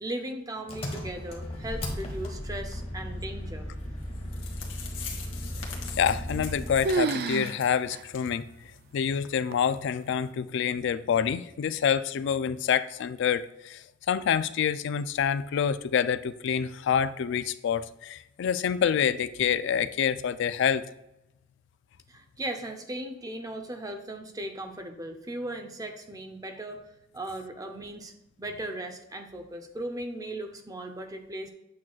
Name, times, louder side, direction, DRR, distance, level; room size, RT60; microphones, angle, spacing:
voice 1, 0.0-3.7 22.1-26.8 27.1-28.1 28.4-31.5, right 1 dB, 20° right, 5 dB, 0.7 m, -37 dB
Engine, 0.7-7.0, left 1 dB, 30° left, 1.3 m, -36 dB
sound 1, 4.0-4.1 4.3-7.7 8.1-8.3 8.6-8.7 9.2-9.3, left 6 dB, 90° left, 1.4 m, -42 dB
voice 2, 6.0-8.4 8.9-13.8 14.1-20.8, left 8 dB, 65° left, 14 dB, 0.3 m, -27 dB
sound 2, 6.1-6.6 6.8-7.6 7.9-8.0 8.7-8.8 9.5-9.9, right 4 dB, 55° right, 0.3 m, -29 dB
8.5 x 6.1 x 2.3 m, 0.88 s
head